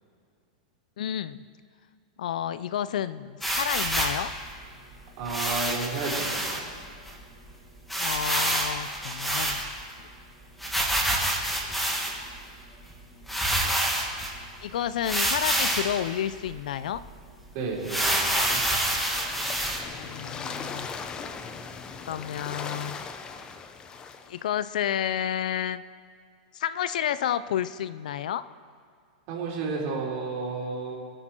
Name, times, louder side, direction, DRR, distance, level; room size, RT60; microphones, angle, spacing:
voice 1, 1.0-1.4 2.2-4.3 8.0-9.7 13.6-13.8 14.6-17.0 19.8-20.9 22.1-23.0 24.3-25.8 26.5-28.4, left 10 dB, 75° left, 15 dB, 0.5 m, -30 dB
sound 1, 3.4-4.2 5.3-6.6 7.1-7.2 7.4-7.5 7.9-9.9 10.6-12.3 12.9-13.0 13.3-14.3 15.0-15.9 16.5-16.6 16.9-17.0 17.8-19.8, right 1 dB, ahead, 1.9 m, -27 dB
voice 2, 5.2-6.6 17.5-18.6 29.3-30.9, right 4 dB, 45° right, -3 dB, 4.1 m, -32 dB
sound 2, 18.3-24.4, left 5 dB, 20° left, 0.7 m, -39 dB
23.5 x 9.0 x 4.5 m, 2.2 s
supercardioid pair, 150°, 4 cm